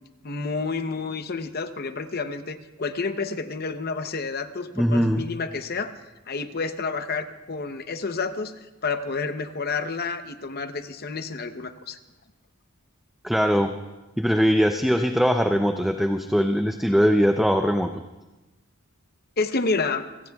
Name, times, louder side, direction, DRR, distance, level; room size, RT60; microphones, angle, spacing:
voice 1, 0.2-5.9 6.3-8.5 8.8-12.0 19.4-20.0, left 4 dB, 45° left, 9 dB, 0.8 m, -29 dB
voice 2, 4.8-5.3 13.2-13.7 14.2-17.9, equal, ahead, 6 dB, 0.4 m, -21 dB
28.0 x 17.0 x 2.4 m, 1.1 s
head